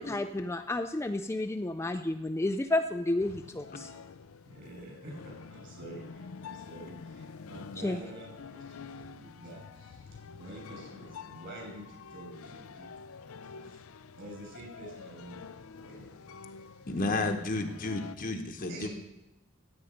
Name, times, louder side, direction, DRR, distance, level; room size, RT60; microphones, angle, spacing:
voice 1, 0.0-3.9 7.8-8.0, left 2 dB, 10° left, 7 dB, 0.4 m, -31 dB
sound 1, 3.2-18.2, left 5 dB, 75° left, 0.5 m, -47 dB
voice 2, 4.4-13.1 13.5-13.8 14.1-15.4 15.8-16.2 16.4-16.7 18.7-18.9, right 1 dB, 55° right, -1 dB, 6.1 m, -47 dB
voice 3, 16.9-18.9, left 2 dB, 40° left, 5 dB, 1.0 m, -32 dB
15.0 x 8.9 x 5.2 m, 0.94 s
head